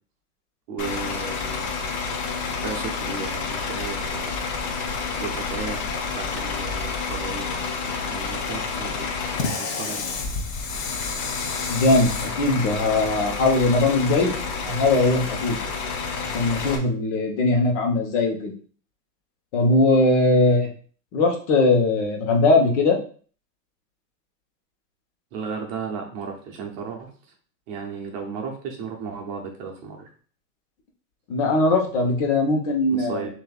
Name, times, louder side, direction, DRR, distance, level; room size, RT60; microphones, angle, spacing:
voice 1, 0.7-1.9 2.6-4.4 5.2-5.8 6.1-7.6 8.0-9.1 9.6-10.1 25.3-27.1 27.7-30.1 32.9-33.3, right 5 dB, 35° right, 2 dB, 0.8 m, -34 dB
Bus / Idling, 0.8-16.8, left 4 dB, 30° left, 0.6 m, -29 dB
voice 2, 11.7-14.3 14.6-15.6 16.2-18.5 19.5-20.7 21.1-23.0 31.3-33.3, left 2 dB, 50° left, 2 dB, 1.2 m, -20 dB
6.4 x 2.8 x 2.4 m, 0.43 s
supercardioid pair, 155°, 48 cm